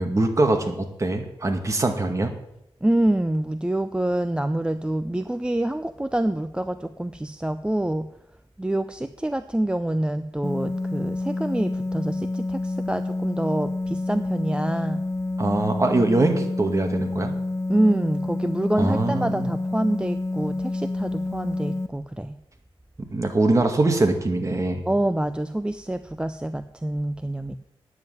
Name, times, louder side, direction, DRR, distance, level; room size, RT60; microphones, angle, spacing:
voice 1, 0.0-2.3 15.4-17.3 18.8-19.5 23.1-24.8, right 2 dB, 30° right, 4 dB, 2.1 m, -22 dB
voice 2, 2.8-8.1 8.6-15.0 17.7-22.3 24.9-27.6, right 1 dB, 10° right, 10 dB, 0.5 m, -26 dB
sound 1, 10.4-21.9, left 2 dB, 30° left, 0.8 m, -28 dB
9.5 x 7.7 x 9.2 m, 0.82 s
wide cardioid pair, 85°, 10 cm